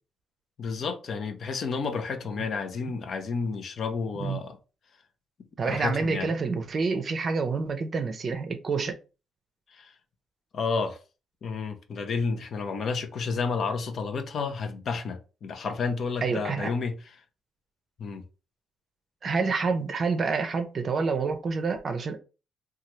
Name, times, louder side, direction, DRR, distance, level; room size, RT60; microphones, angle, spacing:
voice 1, 0.6-4.6 5.6-6.3 9.7-9.9 10.5-11.0 11.4-17.0 18.0-18.2, left 4 dB, 55° left, 0.6 m, -31 dB
voice 2, 5.6-9.0 16.2-16.7 19.2-22.2, right 4 dB, 45° right, 0.5 m, -28 dB
2.7 x 2.3 x 3.1 m
cardioid pair, 90°, 0 cm